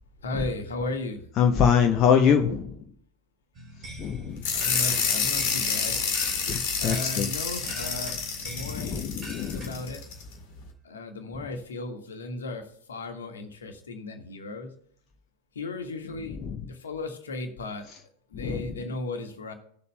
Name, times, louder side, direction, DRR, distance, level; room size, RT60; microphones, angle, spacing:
voice 1, 0.2-1.2 4.5-6.0 6.8-9.1 9.4-10.0 10.8-14.7 15.5-16.4 16.7-17.9 18.3-19.5, left 2 dB, 65° left, 6 dB, 1.4 m, -36 dB
voice 2, 1.4-2.7 4.0-4.4 6.5-7.3 7.6-7.7 8.7-9.7 16.4-16.5 18.3-18.6, left 7 dB, 35° left, 4 dB, 0.8 m, -23 dB
sound 1, 3.5-10.0, equal, 25° right, 3.2 m, -43 dB
sound 2, 4.4-10.2, left 6 dB, 50° left, 2.0 m, -28 dB
18.0 x 6.7 x 2.2 m, 0.66 s
figure-of-eight pair, 90°, 0 cm